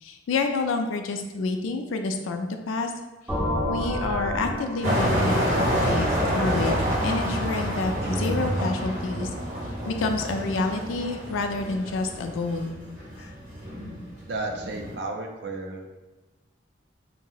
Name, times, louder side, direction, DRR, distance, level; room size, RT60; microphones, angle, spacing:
voice 1, 0.0-2.9 3.7-6.8 7.0-9.3 9.9-12.8 13.2-13.3, left 3 dB, 90° left, 5 dB, 0.4 m, -28 dB
sound 1, 3.3-7.0, left 1 dB, 5° right, 0.7 m, -31 dB
sound 2, 4.8-14.9, equal, 40° right, 1.0 m, -28 dB
sound 3, 8.0-11.8, right 1 dB, 20° right, 1.4 m, -35 dB
voice 2, 14.2-15.9, right 2 dB, 60° right, 2 dB, 0.4 m, -33 dB
2.7 x 2.0 x 3.8 m, 1.1 s
head